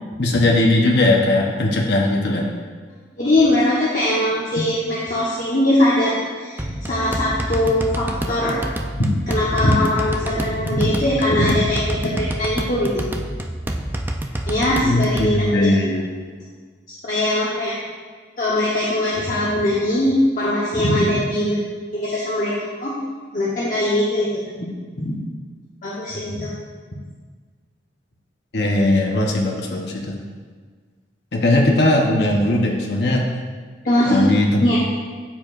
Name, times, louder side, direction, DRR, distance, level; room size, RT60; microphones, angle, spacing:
voice 1, 0.2-2.5 4.6-4.7 14.8-16.1 28.5-30.2 31.3-33.3 34.0-34.8, left 1 dB, 65° left, 0 dB, 0.8 m, -19 dB
voice 2, 3.2-8.6 9.0-13.1 14.5-15.7 17.0-17.7 18.4-21.6 21.9-23.0 23.3-24.7 25.0-25.2 25.8-26.5 33.8-34.2 34.6-34.8, left 1 dB, 50° left, -6 dB, 1.0 m, -21 dB
sound 1, 6.6-15.3, right 1 dB, 10° right, 0.4 m, -28 dB
13.0 x 4.5 x 2.4 m, 1.5 s
head